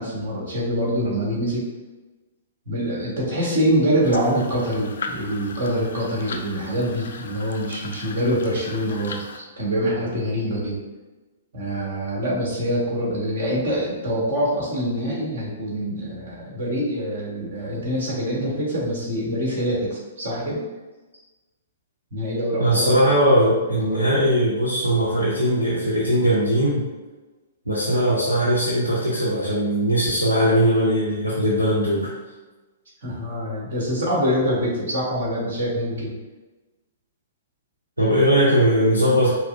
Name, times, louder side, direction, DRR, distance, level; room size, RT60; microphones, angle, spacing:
voice 1, 0.0-1.6 2.7-10.8 11.5-20.6 22.1-22.9 23.8-24.2 33.0-36.2, equal, 55° right, -5 dB, 1.4 m, -25 dB
sound 1, 4.0-9.4, left 4 dB, 60° left, 0.3 m, -37 dB
voice 2, 22.6-26.8 27.7-32.1 38.0-39.3, equal, 90° right, -7 dB, 0.8 m, -19 dB
5.6 x 2.0 x 2.5 m, 1.2 s
figure-of-eight pair, 115°, 0 cm